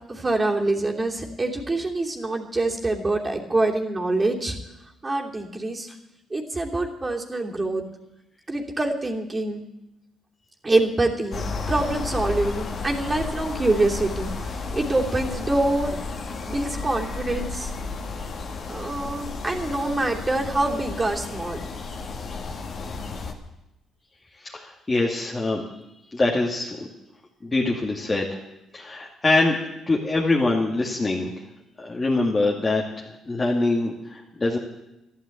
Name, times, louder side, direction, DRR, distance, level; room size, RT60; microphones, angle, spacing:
voice 1, 0.1-4.5 5.0-5.9 6.3-7.8 8.5-9.6 10.6-14.3 14.7-15.9 16.5-17.7 18.7-21.6, right 2 dB, 25° right, 0 dB, 3.0 m, -25 dB
sound 1, 11.3-23.3, left 4 dB, 55° left, 2.1 m, -32 dB
voice 2, 24.4-25.6 26.1-26.9 27.4-28.4 28.7-29.6 29.9-31.3 31.8-34.6, left 2 dB, 25° left, -2 dB, 2.3 m, -24 dB
13.0 x 11.5 x 8.5 m, 0.90 s
hypercardioid pair, 55°, 0 cm